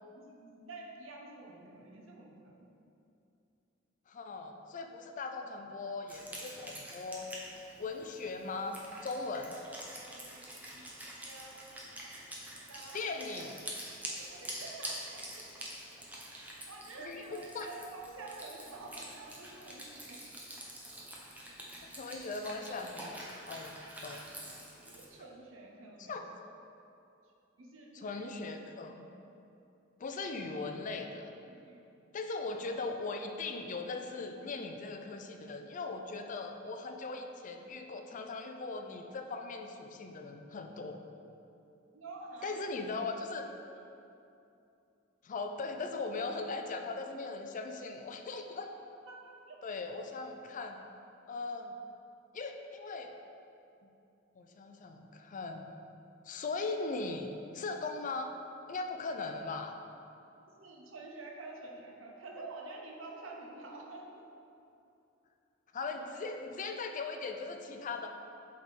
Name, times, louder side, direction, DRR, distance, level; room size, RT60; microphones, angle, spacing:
voice 1, 0.1-2.7 10.0-10.9 11.2-12.1 12.7-13.5 14.0-15.5 16.3-20.2 24.9-26.2 27.6-28.2 31.6-31.8 41.9-43.1 49.1-49.6 60.5-64.3, right 3 dB, 75° right, 0 dB, 0.9 m, -49 dB
voice 2, 4.1-7.3 7.8-9.6 12.3-12.5 12.9-13.6 17.0-17.7 22.0-24.2 26.1-26.2 27.9-29.1 30.0-31.3 32.1-41.0 42.4-43.5 45.2-48.7 49.6-50.8 51.3-51.8 52.3-53.1 54.4-55.7 56.2-58.3 58.7-59.7 65.7-68.1, left 3 dB, 40° left, 5 dB, 0.4 m, -39 dB
Wind instrument woodwind instrument, 6.1-25.1, right 1 dB, 10° right, 0.8 m, -46 dB
7.5 x 3.6 x 4.1 m, 2.7 s
head